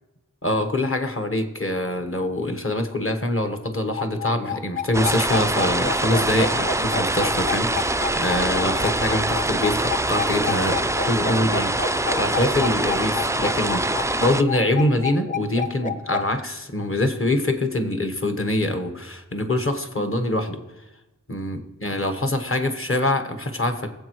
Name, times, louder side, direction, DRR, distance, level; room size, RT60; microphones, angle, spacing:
voice 1, 0.4-13.9 14.2-20.6 21.3-23.9, left 1 dB, 45° left, 7 dB, 1.3 m, -24 dB
sound 1, 3.9-16.2, left 5 dB, 25° left, 0.7 m, -29 dB
sound 2, 4.9-14.4, right 2 dB, 10° right, 0.3 m, -24 dB
19.5 x 7.8 x 3.1 m, 1.0 s
wide cardioid pair, 40°, 31 cm